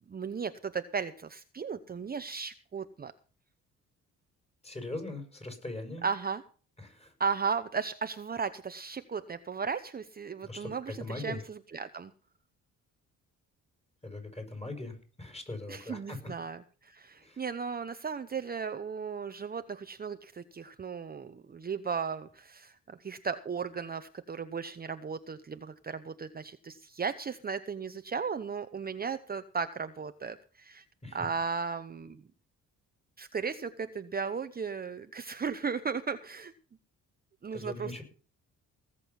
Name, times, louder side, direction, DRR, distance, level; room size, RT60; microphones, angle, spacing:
voice 1, 0.1-3.1 6.0-6.4 7.2-12.1 15.7-30.8 31.1-32.2 33.2-36.5 37.4-38.0, right 5 dB, 30° right, 10 dB, 0.9 m, -36 dB
voice 2, 4.6-6.1 6.8-7.1 10.4-11.4 14.0-16.2 17.2-17.4 31.0-31.2 37.5-38.0, left 2 dB, 20° left, 5 dB, 6.3 m, -40 dB
19.0 x 7.7 x 5.5 m, 0.39 s
cardioid pair, 90°, 30 cm